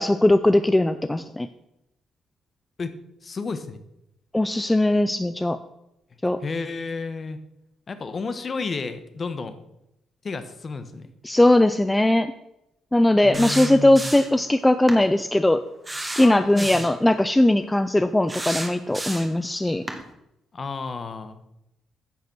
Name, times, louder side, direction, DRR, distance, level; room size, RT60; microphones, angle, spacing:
voice 1, 0.0-1.5 4.3-5.6 6.2-6.4 11.2-12.3 12.9-15.6 16.2-19.8, left 1 dB, 10° left, 10 dB, 0.5 m, -19 dB
voice 2, 3.2-3.8 6.4-7.4 7.9-9.6 10.2-11.1 13.2-14.1 16.2-16.9 20.5-21.5, left 4 dB, 40° left, 11 dB, 1.1 m, -32 dB
sound 1, 13.3-14.4 14.9-15.0 15.8-17.0 18.3-19.4 19.9-20.0, right 2 dB, 15° right, 1.7 m, -32 dB
10.5 x 6.6 x 6.1 m, 0.85 s
cardioid pair, 90°, 0 cm